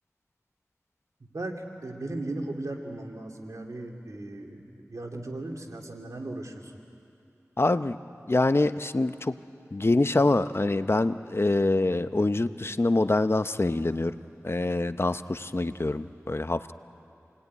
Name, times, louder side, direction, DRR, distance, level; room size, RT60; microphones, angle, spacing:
voice 1, 1.3-6.7, right 2 dB, 90° right, 1 dB, 2.5 m, -37 dB
voice 2, 7.6-8.0 8.3-9.3 9.7-14.1 14.4-16.7, left 2 dB, 50° left, 11 dB, 0.8 m, -25 dB
27.5 x 20.0 x 9.5 m, 2.7 s
wide cardioid pair, 40°, 6 cm